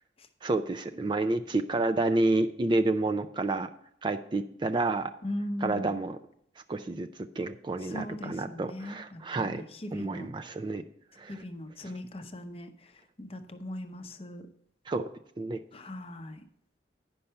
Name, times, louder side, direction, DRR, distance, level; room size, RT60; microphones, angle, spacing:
voice 1, 0.4-3.7 4.0-5.1 5.6-6.2 6.7-9.6 9.9-10.8 11.2-11.3 14.9-15.1 15.4-15.6, right 2 dB, 25° right, 8 dB, 0.3 m, -29 dB
voice 2, 5.2-6.0 7.8-10.3 11.3-14.5 15.7-16.4, left 1 dB, 30° left, 7 dB, 0.7 m, -39 dB
10.0 x 5.4 x 5.7 m, 0.71 s
head